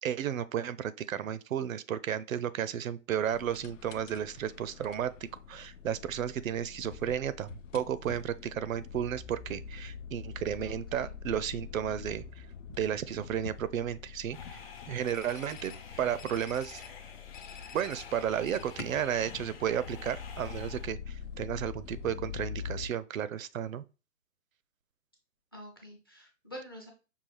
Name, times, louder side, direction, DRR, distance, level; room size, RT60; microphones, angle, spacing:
voice 1, 0.0-5.1 5.5-12.2 12.8-14.6 14.9-16.8 17.7-23.8, right 9 dB, 80° right, 0.5 m, -33 dB
sound 1, 3.3-22.9, left 7 dB, 70° left, 0.6 m, -45 dB
voice 2, 10.6-11.1 25.5-26.9, equal, 20° left, 0.4 m, -47 dB
sound 2, 14.3-20.9, left 6 dB, 45° left, 0.9 m, -49 dB
5.5 x 2.3 x 3.0 m
hypercardioid pair, 150°, 40 cm